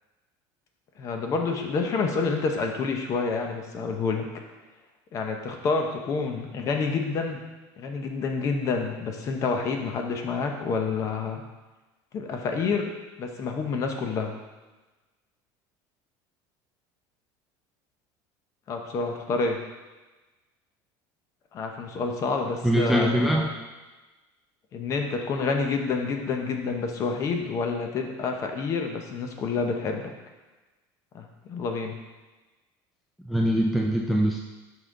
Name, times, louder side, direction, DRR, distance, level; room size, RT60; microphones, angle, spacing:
voice 1, 1.0-4.3 5.1-7.4 7.8-11.4 12.1-12.9 13.2-14.3 18.7-19.6 21.5-23.5 24.7-30.1 31.1-32.0, left 4 dB, 35° left, 3 dB, 0.7 m, -28 dB
voice 2, 22.6-23.5 33.3-34.4, right 1 dB, ahead, -1 dB, 0.3 m, -23 dB
5.6 x 5.4 x 3.7 m, 1.2 s
cardioid pair, 170°, 10 cm